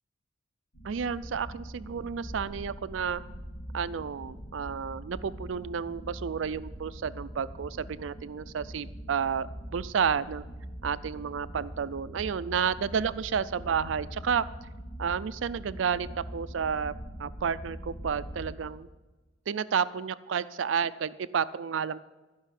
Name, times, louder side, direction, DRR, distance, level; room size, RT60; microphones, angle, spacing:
sound 1, 0.7-18.6, equal, 85° left, 2.8 m, -43 dB
voice 1, 0.8-3.2 3.7-9.5 9.7-10.4 10.8-14.4 15.0-16.9 17.2-18.9 19.5-22.0, right 7 dB, 80° right, 15 dB, 0.4 m, -31 dB
14.5 x 5.6 x 9.2 m, 1.2 s
head